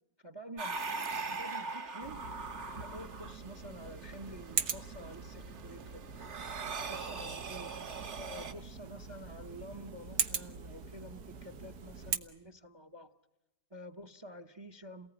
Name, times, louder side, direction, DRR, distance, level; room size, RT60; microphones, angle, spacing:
voice 1, 0.2-0.8 1.1-2.2 2.7-6.1 6.9-7.8 8.2-13.1 13.7-15.1, equal, 20° right, 11 dB, 0.7 m, -49 dB
sound 1, 0.6-8.5, right 4 dB, 50° right, 1.5 m, -41 dB
sound 2, 2.0-12.2, right 6 dB, 80° right, 1.9 m, -41 dB
28.5 x 19.0 x 10.0 m, 0.98 s
omnidirectional pair, 1.7 m